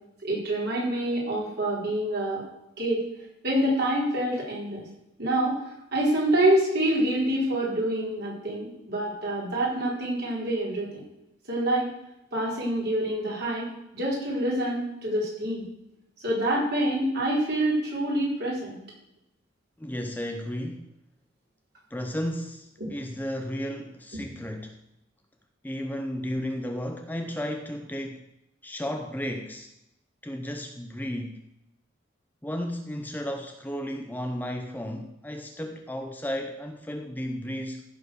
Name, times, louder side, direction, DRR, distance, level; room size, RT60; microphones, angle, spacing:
voice 1, 0.2-2.4 2.8-3.0 3.4-4.8 5.2-5.6 5.9-11.0 11.5-11.9 12.3-13.7 13.9-15.6 16.2-18.8, right 1 dB, 55° right, -5 dB, 4.6 m, -26 dB
voice 2, 19.8-20.9 21.9-24.8 25.6-28.3 28.6-29.7 30.2-31.4 32.4-37.8, equal, 10° left, 4 dB, 0.6 m, -33 dB
15.0 x 5.0 x 6.5 m, 0.84 s
head